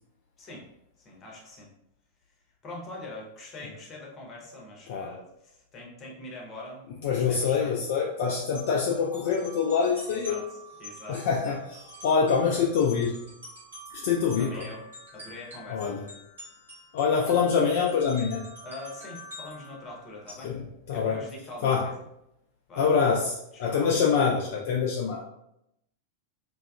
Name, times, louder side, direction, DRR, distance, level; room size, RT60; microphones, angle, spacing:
voice 1, 1.0-1.7 2.6-6.8 7.1-7.8 10.1-11.6 14.4-14.8 15.1-15.9 18.6-20.5 20.9-21.9 22.7-22.9 23.5-24.0, left 2 dB, 30° left, -2 dB, 0.7 m, -43 dB
voice 2, 7.0-10.4 11.1-11.6 12.0-13.1 14.0-14.7 15.7-16.0 16.9-18.4 20.4-20.6 20.9-21.2 21.6-21.9 22.8-25.2, left 6 dB, 50° left, -2 dB, 0.3 m, -25 dB
sound 1, 8.5-20.3, equal, 70° right, 0.9 m, -47 dB
2.6 x 2.3 x 2.3 m, 0.81 s
figure-of-eight pair, 90°, 0 cm